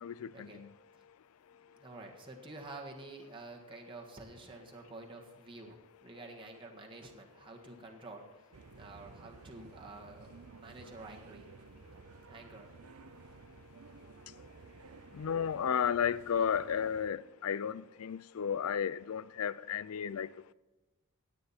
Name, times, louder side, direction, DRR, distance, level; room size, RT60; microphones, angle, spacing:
voice 1, 0.0-0.7 15.1-20.5, left 7 dB, 70° left, 0.4 m, -33 dB
voice 2, 1.5-8.2 8.7-11.5 12.3-12.7, right 2 dB, 25° right, 1.6 m, -49 dB
sound 1, 8.5-17.1, right 4 dB, 75° right, 0.6 m, -54 dB
16.5 x 9.1 x 4.3 m
head